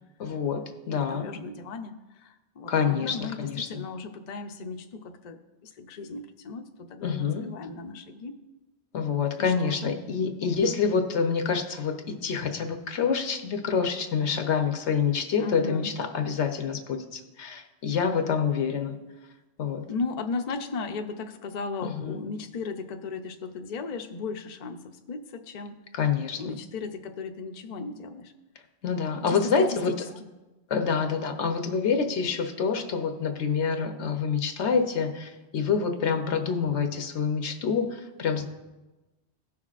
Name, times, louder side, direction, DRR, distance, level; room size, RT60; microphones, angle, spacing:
voice 1, 0.2-1.3 2.7-3.8 7.0-7.5 8.9-19.0 19.6-19.8 21.8-22.2 25.9-26.5 28.8-29.9 30.7-38.5, left 6 dB, 80° left, 6 dB, 1.1 m, -27 dB
voice 2, 0.9-8.4 9.4-9.9 15.4-15.9 19.9-25.8 26.4-28.3 29.3-30.3, left 4 dB, 50° left, 5 dB, 0.6 m, -36 dB
17.5 x 6.0 x 2.4 m, 1.1 s
omnidirectional pair, 1.1 m